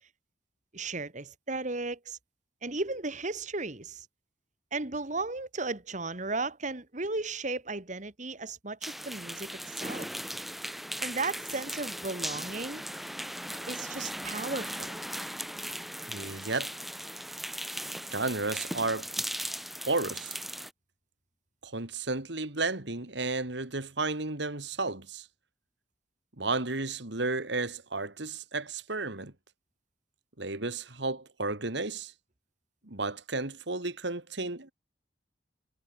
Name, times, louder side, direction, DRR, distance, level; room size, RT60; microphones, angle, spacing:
voice 1, 0.7-2.2 2.6-4.1 4.7-10.1 11.0-12.8 13.7-15.0, right 3 dB, 40° right, 1.9 m, -35 dB
sound 1, 8.8-20.7, equal, ahead, 2.9 m, -38 dB
voice 2, 16.1-16.7 18.1-19.1 19.8-20.4 21.6-25.3 26.4-29.3 30.4-32.1 32.8-34.7, right 3 dB, 65° right, 2.4 m, -33 dB
head